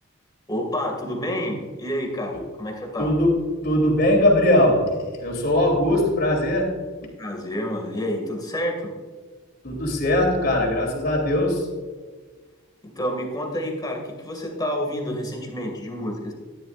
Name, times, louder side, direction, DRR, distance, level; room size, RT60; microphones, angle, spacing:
voice 1, 0.5-3.1 7.2-8.9 13.0-16.3, equal, 20° left, 1 dB, 2.2 m, -29 dB
voice 2, 3.0-6.7 9.6-11.7, left 1 dB, 50° left, -1 dB, 3.1 m, -20 dB
14.0 x 11.0 x 2.5 m, 1.4 s
head